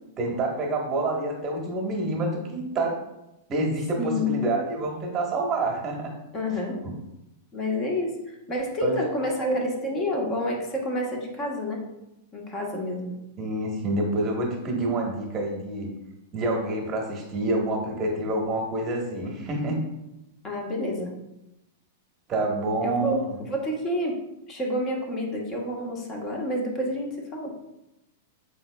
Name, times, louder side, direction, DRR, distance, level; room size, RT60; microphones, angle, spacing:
voice 1, 0.2-3.0 3.5-6.1 6.8-6.9 8.8-9.6 13.4-15.9 16.3-19.8 22.3-23.4, right 2 dB, 30° right, 0 dB, 1.1 m, -27 dB
voice 2, 4.0-4.4 6.3-6.8 7.5-11.8 12.3-13.2 20.4-21.1 22.8-24.2 24.5-27.5, left 1 dB, 30° left, 0 dB, 1.1 m, -29 dB
4.7 x 3.9 x 2.2 m, 0.90 s
hypercardioid pair, 105°, 0 cm